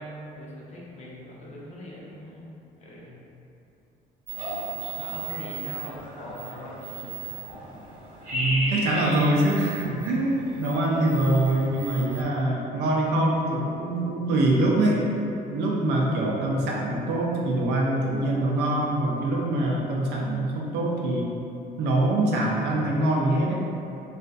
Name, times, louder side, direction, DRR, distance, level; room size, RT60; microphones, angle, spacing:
voice 1, 0.0-3.2 5.0-7.3, equal, 40° left, -5 dB, 0.6 m, -41 dB
sound 1, 4.3-12.2, right 2 dB, 55° right, 0.8 m, -35 dB
voice 2, 8.3-15.0 15.5-21.3 21.8-23.5, right 1 dB, 80° right, -3 dB, 0.5 m, -24 dB
2.5 x 2.4 x 2.2 m, 2.7 s
cardioid pair, 110°, 17 cm